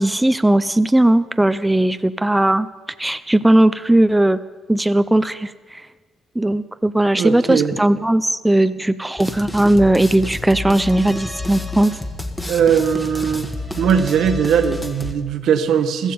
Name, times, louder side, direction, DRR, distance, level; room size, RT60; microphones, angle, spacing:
voice 1, 0.0-2.7 3.0-4.4 4.7-5.8 6.4-11.9, right 1 dB, 10° right, 12 dB, 0.4 m, -17 dB
voice 2, 7.1-7.7 12.5-13.5 13.8-16.1, right 7 dB, 75° right, 9 dB, 1.1 m, -19 dB
sound 1, 9.2-15.1, left 2 dB, 10° left, 1.4 m, -30 dB
15.0 x 14.0 x 5.4 m, 1.4 s
cardioid pair, 90°, 0 cm